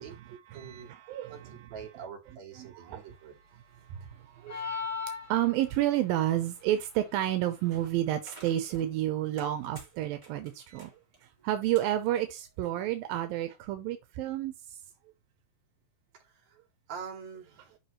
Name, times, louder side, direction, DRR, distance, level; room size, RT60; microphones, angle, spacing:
voice 1, 0.0-0.9 1.3-3.4 10.7-10.8 16.2-16.6 16.9-17.8, right 6 dB, 55° right, 3.7 m, -45 dB
voice 2, 0.5-1.6 2.6-3.1 3.9-4.6 5.3-10.9 11.2-14.8, right 13 dB, 85° right, 2.7 m, -30 dB
sound 1, 4.5-5.9, left 5 dB, 5° left, 1.9 m, -36 dB
sound 2, 7.6-13.0, right 2 dB, 10° right, 3.6 m, -55 dB
11.0 x 5.7 x 3.1 m
omnidirectional pair, 4.0 m